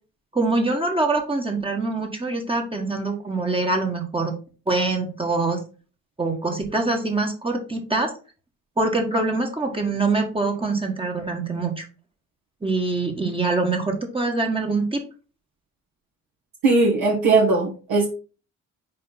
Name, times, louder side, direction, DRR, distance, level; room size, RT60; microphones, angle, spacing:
voice 1, 0.3-4.3 4.7-5.6 6.2-8.1 8.8-11.8 12.6-15.0, right 3 dB, 15° right, 2 dB, 1.5 m, -24 dB
voice 2, 16.6-18.1, right 3 dB, 55° right, -3 dB, 1.8 m, -19 dB
5.6 x 5.0 x 4.1 m, 0.36 s
figure-of-eight pair, 45°, 38 cm